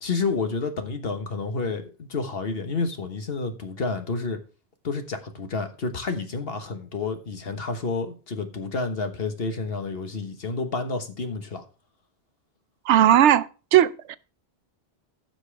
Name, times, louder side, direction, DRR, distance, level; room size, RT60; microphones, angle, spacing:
voice 1, 0.0-4.4 4.8-11.6, left 4 dB, 60° left, 1.5 m, -30 dB
voice 2, 12.9-14.2, right 11 dB, 85° right, 0.9 m, -18 dB
15.0 x 6.1 x 3.3 m
omnidirectional pair, 1.1 m